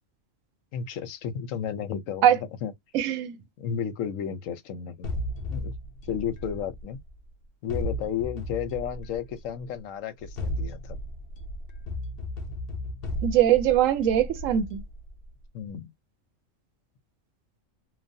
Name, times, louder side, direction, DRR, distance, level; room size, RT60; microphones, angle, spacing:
voice 1, 0.7-2.7 3.6-5.1 5.5-5.7 6.1-7.0 7.6-11.0 15.5-15.9, left 8 dB, 85° left, 1.1 m, -33 dB
voice 2, 2.9-3.4 13.2-14.8, right 11 dB, 85° right, 1.0 m, -21 dB
sound 1, 5.0-7.2 7.7-9.5 10.2-15.3, equal, 55° left, 0.8 m, -35 dB
3.1 x 2.0 x 2.6 m
omnidirectional pair, 1.3 m